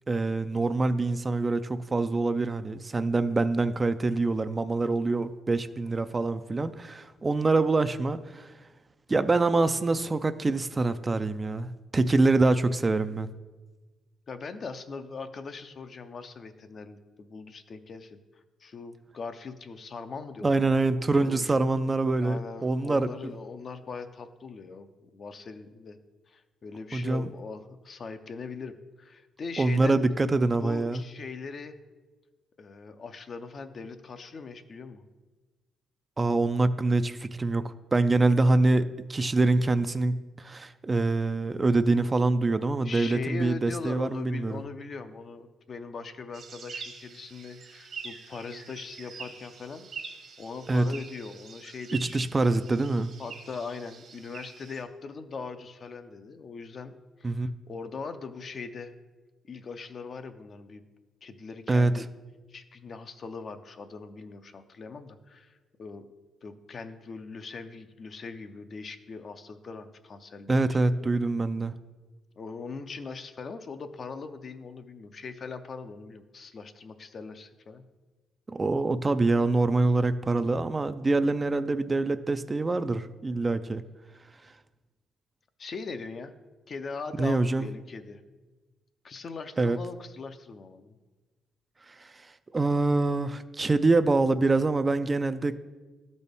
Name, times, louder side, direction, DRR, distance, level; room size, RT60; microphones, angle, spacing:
voice 1, 0.1-8.5 9.1-13.3 20.4-23.1 26.9-27.3 29.6-31.0 36.2-44.6 50.7-50.9 51.9-53.1 57.2-57.5 61.7-62.0 70.5-71.7 78.5-83.8 87.2-87.7 89.6-89.8 91.9-92.1 92.5-95.6, right 3 dB, 25° right, 11 dB, 0.3 m, -25 dB
voice 2, 14.3-21.6 22.2-26.0 26.3-30.3 30.6-31.8 32.6-35.1 42.8-49.9 50.4-52.2 53.2-56.9 57.2-58.9 59.5-60.8 61.2-62.1 62.5-66.1 66.4-70.9 72.4-77.8 85.6-86.3 86.7-88.2 89.0-91.0, left 4 dB, 45° left, 9 dB, 0.5 m, -41 dB
sound 1, 46.3-54.8, right 5 dB, 60° right, 1.1 m, -45 dB
12.0 x 4.1 x 3.5 m, 1.3 s
cardioid pair, 90°, 0 cm